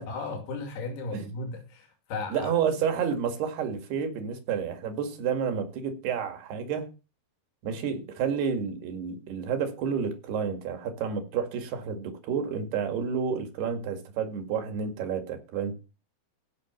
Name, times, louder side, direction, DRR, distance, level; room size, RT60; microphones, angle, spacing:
voice 1, 0.1-2.5, left 3 dB, 85° left, 4.5 m, -35 dB
voice 2, 2.3-6.9 7.6-15.7, right 7 dB, 85° right, 4.1 m, -30 dB
15.5 x 6.0 x 6.8 m
omnidirectional pair, 4.5 m